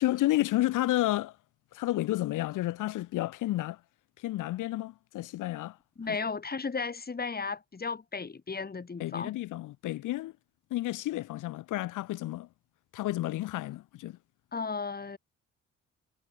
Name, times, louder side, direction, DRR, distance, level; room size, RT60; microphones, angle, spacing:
voice 1, 0.0-1.3 1.7-3.8 4.2-5.8 6.1-6.2 9.0-10.3 10.7-12.5 12.9-14.2, left 16 dB, 90° left, 3.2 m, -31 dB
voice 2, 6.0-9.3 14.5-15.2, left 4 dB, 30° left, 5.7 m, -35 dB
cardioid pair, 90°, 30 cm